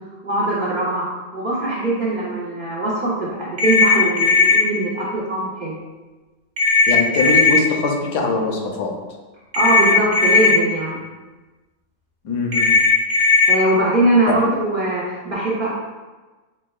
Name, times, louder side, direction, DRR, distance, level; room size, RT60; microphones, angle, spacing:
voice 1, 0.2-1.0 1.3-5.8 9.5-11.0 13.5-15.7, right 2 dB, 75° right, -7 dB, 0.4 m, -21 dB
sound 1, 3.6-4.6 6.6-7.6 9.5-10.5 12.5-13.5, left 3 dB, 40° right, 0.7 m, -16 dB
voice 2, 6.9-8.9 12.2-12.7, left 3 dB, 75° left, 1 dB, 1.1 m, -22 dB
6.3 x 2.2 x 2.3 m, 1.2 s
omnidirectional pair, 1.8 m